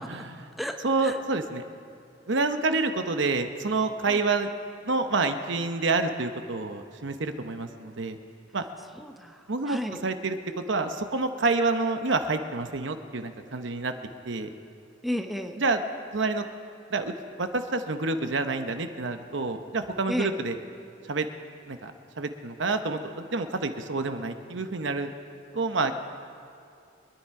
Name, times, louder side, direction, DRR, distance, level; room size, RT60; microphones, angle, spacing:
voice 1, 0.0-0.5 0.8-1.6 2.3-4.5 4.8-8.2 8.5-8.6 9.5-10.4 10.7-13.9 14.3-14.5 15.6-15.8 16.1-16.4 16.9-20.6 21.1-21.3 21.7-21.9 22.2-25.1 25.5-25.9, right 3 dB, 65° right, 8 dB, 0.9 m, -28 dB
voice 2, 0.6-1.2 4.0-4.3 9.0-10.0 15.0-15.6 20.1-20.4, equal, ahead, 4 dB, 0.7 m, -33 dB
24.5 x 10.0 x 4.8 m, 2.5 s
head